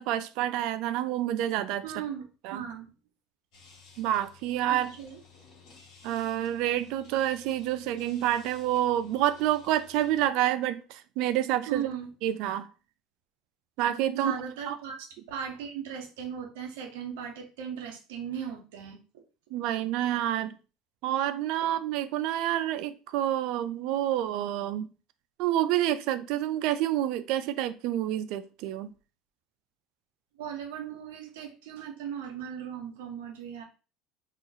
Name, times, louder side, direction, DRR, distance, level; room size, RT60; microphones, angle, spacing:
voice 1, 0.0-1.9 2.4-2.6 4.0-4.9 6.0-11.9 12.2-12.7 13.8-14.3 14.7-14.8 19.5-20.6 21.0-24.9 25.4-28.9, right 12 dB, 70° right, 0.3 m, -28 dB
voice 2, 1.8-2.9 4.7-5.2 11.7-12.1 14.1-15.0 15.3-19.0 30.4-33.6, right 8 dB, 85° right, 0.7 m, -37 dB
sound 1, 3.5-10.3, left 5 dB, 60° left, 1.6 m, -55 dB
2.9 x 2.4 x 3.9 m
supercardioid pair, 95°, 0 cm